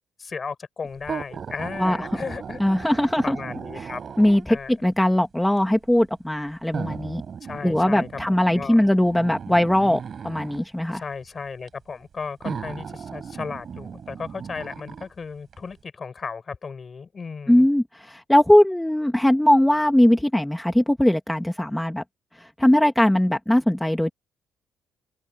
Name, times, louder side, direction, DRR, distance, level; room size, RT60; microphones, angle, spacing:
voice 1, 0.2-4.0 4.5-4.7 7.4-8.9 10.9-17.7, left 5 dB, 40° left, 6.4 m, -35 dB
sound 1, 1.0-4.7 5.6-5.7 6.7-10.7 11.7-11.8 12.4-15.1 15.5-15.6, right 7 dB, 50° right, 5.7 m, -36 dB
voice 2, 2.6-3.4 3.8-3.9 4.2-4.6 4.8-7.2 7.6-11.0 17.5-22.0 22.4-24.1, left 1 dB, 5° left, 1.6 m, -20 dB
cardioid pair, 90°, 0 cm